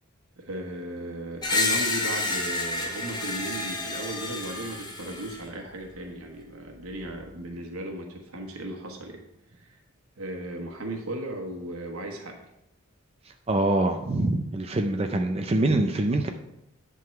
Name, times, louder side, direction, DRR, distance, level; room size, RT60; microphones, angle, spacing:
voice 1, 0.4-9.2 9.5-9.8 10.2-12.4, right 1 dB, 85° right, 2 dB, 1.2 m, -36 dB
Screech, 1.4-5.4, left 2 dB, 20° left, 0.9 m, -29 dB
voice 2, 13.5-16.3, right 2 dB, 30° right, 6 dB, 0.4 m, -24 dB
10.5 x 3.8 x 5.7 m, 0.85 s
head